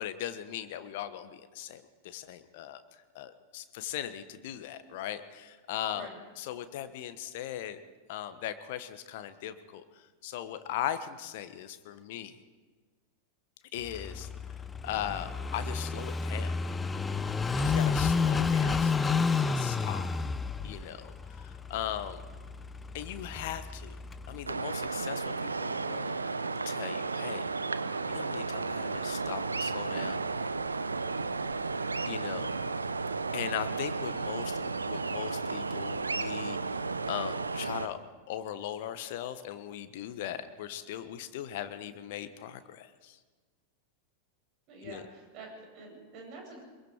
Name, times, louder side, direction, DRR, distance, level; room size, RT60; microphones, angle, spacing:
voice 1, 0.0-2.8 3.1-6.1 6.4-7.8 8.1-9.8 10.2-12.3 13.7-14.3 14.8-16.5 17.6-20.0 20.6-22.2 22.9-24.0 24.3-27.5 28.1-30.2 32.1-32.5 33.3-36.8 37.1-38.0 38.3-43.2 44.8-45.0, left 11 dB, 50° left, 11 dB, 1.3 m, -39 dB
Car passing by / Idling, 13.8-24.5, left 5 dB, 15° left, 0.8 m, -31 dB
sound 1, 24.5-37.9, right 4 dB, 80° right, 0.8 m, -33 dB
voice 2, 44.7-46.6, right 3 dB, 40° right, 1 dB, 7.3 m, -47 dB
24.0 x 22.5 x 4.9 m, 1.4 s
figure-of-eight pair, 90°, 0 cm